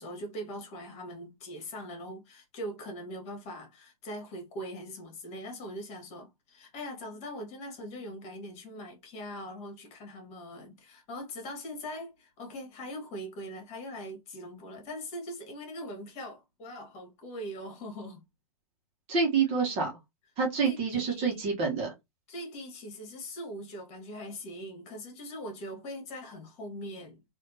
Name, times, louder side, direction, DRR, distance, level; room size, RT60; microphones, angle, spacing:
voice 1, 0.0-18.2 20.6-21.4 22.3-27.2, equal, 35° left, 1.8 m, -41 dB
voice 2, 19.1-20.0 20.4-21.9, right 5 dB, 30° right, 1.4 m, -27 dB
3.4 x 2.8 x 2.9 m
hypercardioid pair, 115°, 19 cm